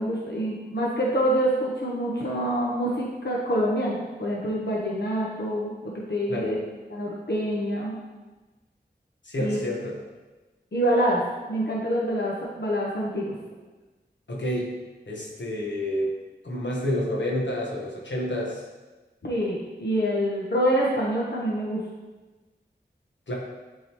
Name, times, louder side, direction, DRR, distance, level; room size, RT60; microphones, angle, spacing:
voice 1, 0.0-6.6 6.9-7.9 9.4-9.6 10.7-11.2 11.5-13.4 19.2-21.8, equal, 65° left, -4 dB, 1.0 m, -26 dB
voice 2, 9.2-10.0 14.3-14.7 15.1-16.1 16.4-18.6 23.3-23.4, left 1 dB, 85° left, -3 dB, 1.2 m, -29 dB
8.6 x 3.8 x 3.0 m, 1.2 s
wide cardioid pair, 45°, 18 cm